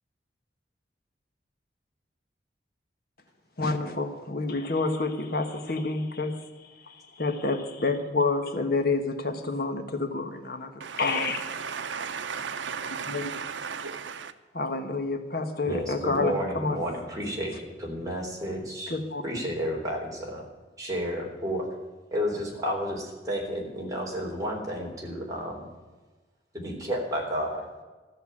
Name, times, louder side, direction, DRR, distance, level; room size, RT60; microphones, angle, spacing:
voice 1, 3.6-10.7 11.0-11.7 12.9-13.3 14.5-16.8 18.9-19.2, left 3 dB, 55° left, 6 dB, 1.3 m, -29 dB
voice 2, 10.8-14.3, right 6 dB, 85° right, 10 dB, 0.8 m, -35 dB
voice 3, 15.6-18.9 19.2-20.4 20.8-21.7 22.1-25.7 26.5-27.7, equal, 20° right, -2 dB, 3.6 m, -31 dB
14.0 x 6.8 x 9.7 m, 1.3 s
head